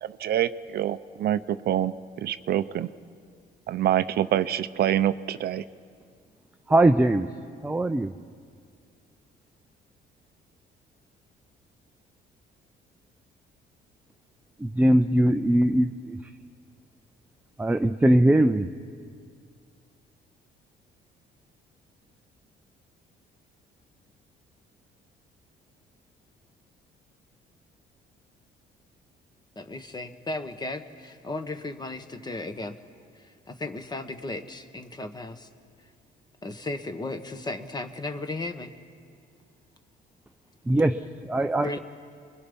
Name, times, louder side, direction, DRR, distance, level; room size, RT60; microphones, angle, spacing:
voice 1, 0.0-1.9 2.2-2.9 3.7-5.6, right 11 dB, 60° right, 13 dB, 0.7 m, -26 dB
voice 2, 6.7-7.3 7.6-8.1 14.6-16.2 17.6-18.7 40.7-41.8, right 1 dB, 10° right, 7 dB, 0.6 m, -21 dB
voice 3, 29.5-32.8 33.1-35.5 36.4-38.7 41.6-41.8, left 2 dB, 25° left, 8 dB, 1.5 m, -35 dB
29.0 x 22.5 x 5.4 m, 2.2 s
cardioid pair, 105°, 18 cm